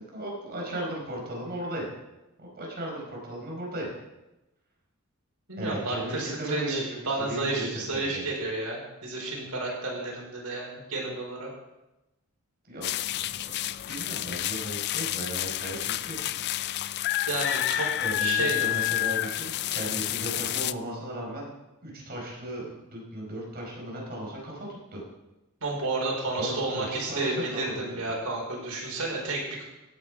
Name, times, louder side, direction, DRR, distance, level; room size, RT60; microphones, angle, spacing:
voice 1, 0.1-1.9 2.4-3.9 5.6-8.2 12.7-12.9 13.1-13.5 13.9-16.2 18.0-21.5 21.8-25.0 26.4-27.6, right 1 dB, 45° right, -2 dB, 4.8 m, -36 dB
voice 2, 5.5-11.5 17.3-17.9 18.2-18.6 25.6-29.6, right 2 dB, 75° right, -2 dB, 5.0 m, -31 dB
sound 1, 12.8-20.7, left 14 dB, 50° left, 0.4 m, -29 dB
16.5 x 8.9 x 4.9 m, 1.0 s
head